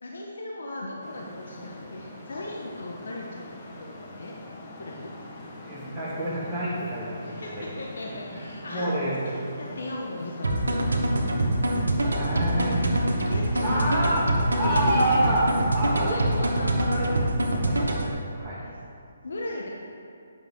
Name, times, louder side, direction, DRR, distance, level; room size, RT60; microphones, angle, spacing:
voice 1, 0.0-4.3 4.8-5.1 7.3-10.6 12.2-12.9 13.3-15.0 16.0-16.7 18.6-18.7 19.2-19.7, left 1 dB, 75° left, -1 dB, 0.8 m, -37 dB
Traffic noise roadway noise, 1.0-16.2, left 2 dB, 35° left, 1.0 m, -43 dB
voice 2, 5.6-7.7 8.3-8.4 8.7-9.2 12.1-12.8 13.6-14.3 14.5-18.6, right 1 dB, 10° left, -13 dB, 1.4 m, -28 dB
sound 1, 10.4-18.1, right 1 dB, 90° right, 1.0 m, -25 dB
8.1 x 6.0 x 3.5 m, 2.4 s
hypercardioid pair, 145°, 0 cm